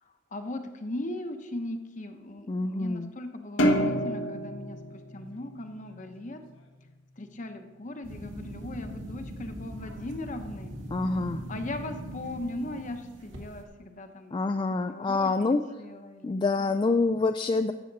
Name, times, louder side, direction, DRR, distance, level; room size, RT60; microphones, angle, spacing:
voice 1, 0.3-4.8 5.1-6.4 7.2-10.7 11.2-14.4 14.7-16.7, left 1 dB, 40° left, 6 dB, 0.9 m, -38 dB
voice 2, 2.5-3.1 10.9-11.4 14.3-15.6 16.2-17.7, left 3 dB, 25° left, 7 dB, 0.3 m, -26 dB
sound 1, 3.6-6.1, equal, 85° left, 1.2 m, -28 dB
sound 2, 8.0-13.6, right 1 dB, 70° right, 2.0 m, -40 dB
13.0 x 8.3 x 4.0 m, 1.2 s
head